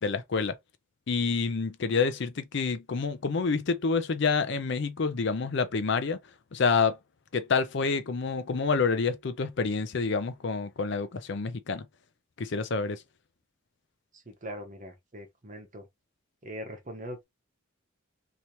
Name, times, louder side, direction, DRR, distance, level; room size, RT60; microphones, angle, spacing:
voice 1, 0.0-0.6 1.1-6.2 6.5-7.0 7.3-11.9 12.4-13.0, left 4 dB, 55° left, 0.5 m, -28 dB
voice 2, 14.1-15.9 16.4-17.2, equal, 40° right, 1.0 m, -41 dB
3.2 x 2.9 x 2.7 m
head